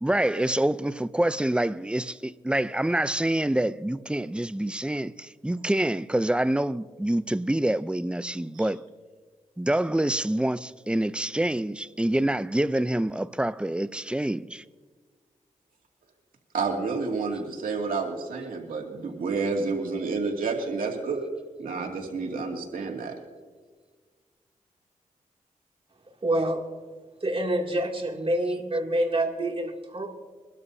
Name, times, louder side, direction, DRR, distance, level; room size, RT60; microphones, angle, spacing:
voice 1, 0.0-8.8 9.6-14.6, right 1 dB, 5° right, 0.6 m, -26 dB
voice 2, 16.5-21.3 21.6-23.1, right 4 dB, 85° right, 2.5 m, -30 dB
voice 3, 26.2-26.6 27.2-30.2, right 1 dB, 40° right, 2.7 m, -27 dB
23.5 x 12.5 x 2.8 m
cardioid pair, 55°, 14 cm